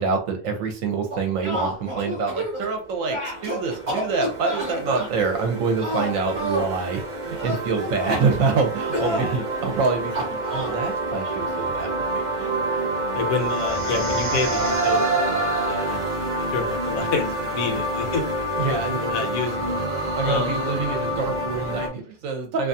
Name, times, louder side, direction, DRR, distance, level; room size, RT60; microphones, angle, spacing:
voice 1, 0.0-12.5 17.7-17.8 18.6-19.0 20.2-22.7, right 4 dB, 70° right, 5 dB, 0.9 m, -26 dB
sound 1, 1.1-2.7 3.1-5.1 5.8-6.7 7.3-8.2 8.9-9.3 10.1-10.7, equal, 35° right, 0.9 m, -29 dB
sound 2, 2.6-21.9, right 2 dB, 55° right, 0.5 m, -27 dB
voice 2, 9.0-9.5 13.1-18.2 18.7-19.8 20.2-20.7, left 5 dB, 75° left, 5 dB, 1.0 m, -29 dB
2.5 x 2.3 x 2.6 m, 0.39 s
omnidirectional pair, 1.5 m